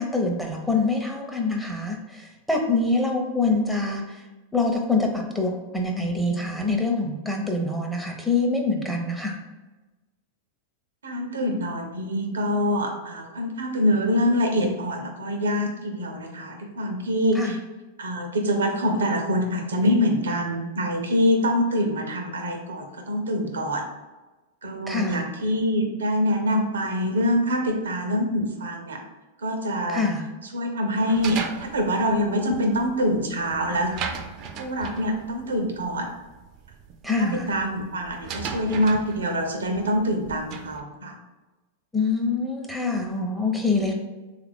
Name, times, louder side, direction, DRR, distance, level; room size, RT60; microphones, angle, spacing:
voice 1, 0.0-4.2 4.5-9.4 17.4-17.6 24.9-25.2 29.9-30.3 37.0-37.5 41.9-43.9, left 3 dB, 5° left, 0 dB, 0.6 m, -25 dB
voice 2, 11.0-17.6 18.0-23.8 24.6-29.0 29.4-30.1 30.5-33.9 34.6-36.1 37.2-41.2, equal, 85° right, 4 dB, 0.6 m, -25 dB
sound 1, 31.1-40.8, right 6 dB, 45° right, 0.4 m, -38 dB
3.3 x 2.4 x 3.5 m, 1.2 s
hypercardioid pair, 105°, 0 cm